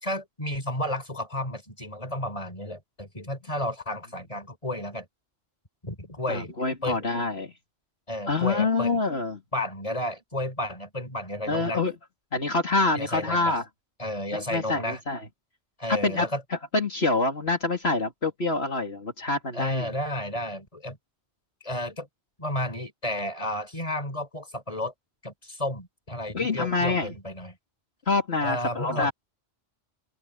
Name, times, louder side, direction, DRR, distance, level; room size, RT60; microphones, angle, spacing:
voice 1, 0.0-5.1 5.8-6.5 6.8-7.0 8.1-9.0 9.5-11.8 12.9-13.6 14.0-15.0 15.8-16.4 19.5-21.0 21.6-22.1 22.4-24.9 25.2-27.6 28.4-29.1, left 1 dB, 30° left, 4.5 m, -32 dB
voice 2, 6.3-7.5 8.3-9.4 11.5-11.9 12.3-13.6 14.3-15.2 15.9-16.3 16.7-19.9 26.3-27.1 28.1-29.1, left 3 dB, 65° left, 3.1 m, -26 dB
open air
omnidirectional pair, 1.2 m